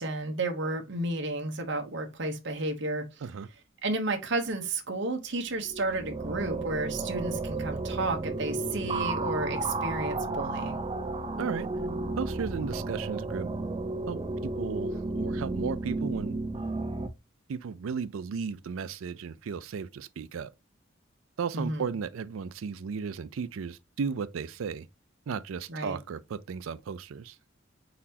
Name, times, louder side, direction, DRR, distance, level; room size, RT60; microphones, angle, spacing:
voice 1, 0.0-3.1 3.8-10.8 21.5-21.9 25.7-26.0, right 2 dB, 65° right, 0.9 m, -32 dB
sound 1, 5.5-17.1, right 2 dB, 25° right, 0.5 m, -33 dB
voice 2, 12.2-13.5 14.1-16.4 17.5-20.5 21.4-24.9 25.3-27.4, right 6 dB, 90° right, 0.4 m, -35 dB
4.2 x 4.0 x 2.8 m
head